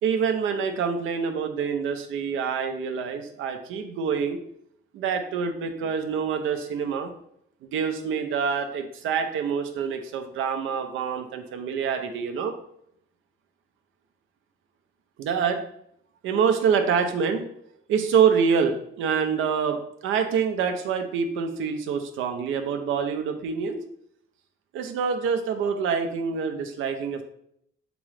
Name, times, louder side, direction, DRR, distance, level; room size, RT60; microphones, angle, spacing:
voice 1, 0.0-4.4 4.9-7.1 7.6-12.5 15.2-15.6 16.2-17.5 17.9-23.8 24.7-27.2, right 6 dB, 85° right, 6 dB, 0.5 m, -26 dB
3.6 x 3.0 x 3.2 m, 0.72 s
cardioid pair, 90°, 20 cm